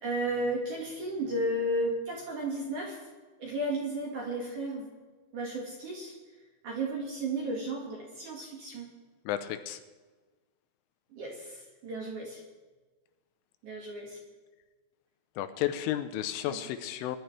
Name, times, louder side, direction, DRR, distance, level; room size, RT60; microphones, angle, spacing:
voice 1, 0.0-3.0 3.4-4.9 5.3-6.1 6.6-8.9 11.1-12.4 13.6-14.2 16.4-16.6, right 1 dB, 55° right, -2 dB, 2.5 m, -33 dB
voice 2, 9.3-9.8 15.4-17.2, left 12 dB, 85° left, 9 dB, 3.3 m, -32 dB
22.0 x 11.5 x 3.3 m, 1.3 s
omnidirectional pair, 5.8 m